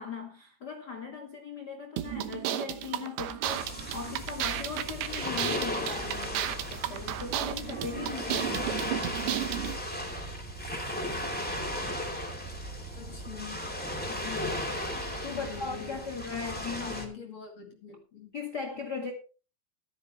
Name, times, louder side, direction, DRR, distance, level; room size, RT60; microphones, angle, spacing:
voice 1, 0.0-9.0 14.1-17.0 18.3-19.1, left 5 dB, 90° left, 0.9 m, -39 dB
sound 1, 2.0-9.8, right 12 dB, 75° right, 3.1 m, -33 dB
sound 2, 3.4-17.0, left 1 dB, 5° left, 1.7 m, -36 dB
voice 2, 11.9-12.5 13.0-13.7 15.3-18.3 18.7-18.8, left 6 dB, 45° left, 3.1 m, -45 dB
14.5 x 13.0 x 3.1 m
omnidirectional pair, 5.0 m